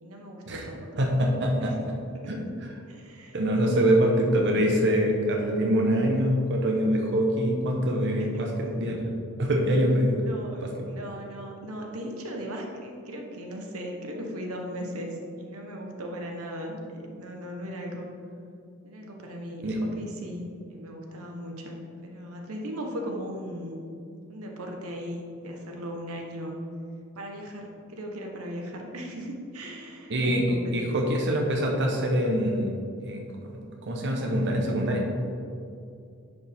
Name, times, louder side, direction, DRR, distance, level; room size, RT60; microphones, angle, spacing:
voice 1, 0.0-1.0 1.6-1.7 2.2-2.3 2.9-3.4 3.7-4.2 8.2-9.0 10.2-18.1 18.8-20.4 20.7-23.8 24.3-26.6 27.1-30.9, equal, 90° right, 1 dB, 1.1 m, -38 dB
voice 2, 1.0-1.7 2.3-2.4 3.3-9.0 9.4-10.1 10.8-10.9 19.6-19.8 30.1-32.7 33.0-35.0, equal, 55° right, 0 dB, 0.9 m, -24 dB
10.0 x 5.1 x 3.5 m, 2.5 s
head